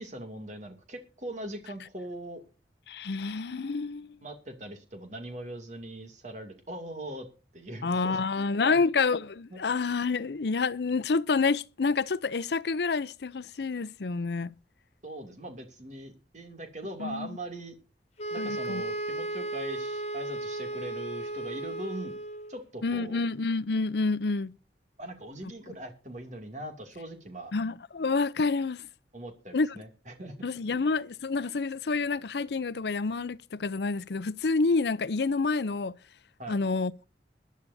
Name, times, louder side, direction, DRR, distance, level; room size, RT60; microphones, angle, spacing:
voice 1, 0.0-2.4 4.2-7.3 7.5-8.8 9.5-9.6 15.0-17.7 18.3-22.2 22.5-23.2 25.0-27.5 29.1-30.3 36.4-36.6, right 1 dB, 45° right, 2.5 m, -41 dB
voice 2, 2.9-4.1 7.8-14.5 17.0-17.3 18.4-18.8 22.8-24.5 27.5-28.8 29.5-29.7 30.4-35.9 36.5-37.0, left 4 dB, 70° left, 0.6 m, -28 dB
sound 1, 18.2-22.6, right 2 dB, 35° left, 1.4 m, -35 dB
22.0 x 11.0 x 2.7 m
head